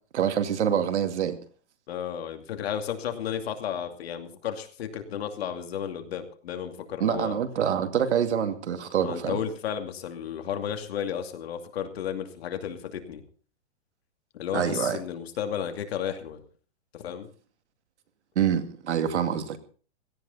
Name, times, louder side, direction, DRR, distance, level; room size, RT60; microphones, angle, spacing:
voice 1, 0.1-1.4 7.0-9.4 14.5-15.0 18.4-19.6, right 8 dB, 80° right, 2.3 m, -26 dB
voice 2, 1.9-7.4 9.0-13.2 14.3-16.4 16.9-17.3, left 9 dB, 60° left, 2.7 m, -33 dB
17.0 x 14.5 x 4.1 m
hypercardioid pair, 155°, 34 cm